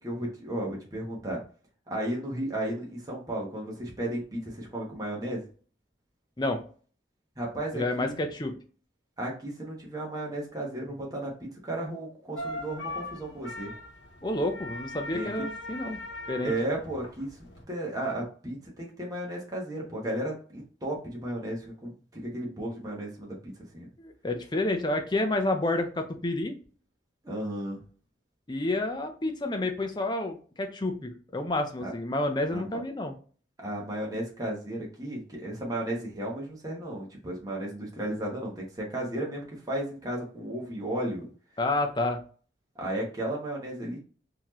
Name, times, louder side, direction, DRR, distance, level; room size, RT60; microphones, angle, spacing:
voice 1, 0.0-1.4 1.9-5.4 7.4-8.2 9.2-13.7 15.1-15.4 16.4-23.9 27.2-27.8 31.8-31.9 32.5-32.8 33.6-41.3 42.8-44.0, right 1 dB, 20° right, -2 dB, 1.0 m, -34 dB
voice 2, 7.7-8.5 14.2-16.0 16.3-16.5 24.0-26.6 28.5-33.1 41.6-42.2, left 2 dB, 25° left, 5 dB, 0.6 m, -29 dB
sound 1, 12.3-17.6, left 1 dB, 85° left, 1.0 m, -40 dB
4.1 x 2.8 x 3.0 m, 0.40 s
head